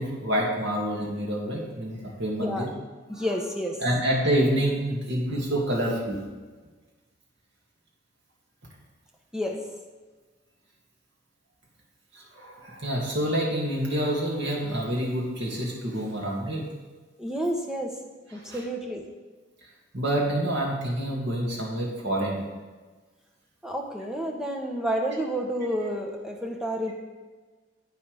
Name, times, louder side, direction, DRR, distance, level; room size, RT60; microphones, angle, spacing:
voice 1, 0.0-2.7 3.1-3.3 3.8-6.2 12.1-16.6 18.4-18.6 19.9-22.4, right 1 dB, 65° right, -3 dB, 2.4 m, -27 dB
voice 2, 2.4-2.7 3.1-3.8 9.3-9.6 17.2-17.9 18.3-19.0 23.6-26.9, equal, 5° right, 1 dB, 1.0 m, -30 dB
10.0 x 8.6 x 3.5 m, 1.3 s
head